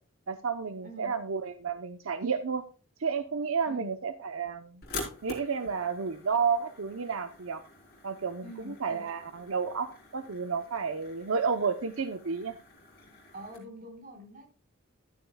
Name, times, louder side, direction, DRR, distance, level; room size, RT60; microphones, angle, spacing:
voice 1, 0.3-2.6 3.0-4.8 5.2-7.6 8.0-12.6, right 5 dB, 80° right, 9 dB, 0.8 m, -31 dB
sound 1, 4.8-13.6, left 3 dB, 45° left, 3.7 m, -46 dB
voice 2, 8.4-9.0 13.3-14.4, equal, 40° right, 2 dB, 4.7 m, -45 dB
12.5 x 10.5 x 2.3 m, 0.35 s
head